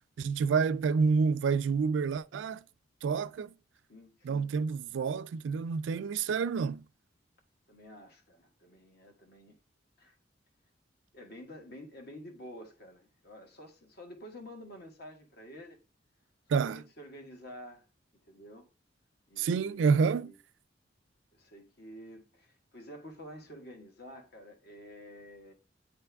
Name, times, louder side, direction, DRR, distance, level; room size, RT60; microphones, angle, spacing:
voice 1, 0.2-2.6 3.0-3.5 4.2-6.8 16.5-16.8 19.4-20.3, right 5 dB, 80° right, 0.3 m, -28 dB
voice 2, 3.9-4.6 7.7-9.6 10.0-10.1 11.1-15.8 16.5-17.9 18.3-18.7 19.3-20.4 21.3-25.5, equal, 60° left, 1.5 m, -49 dB
9.1 x 3.4 x 3.4 m
head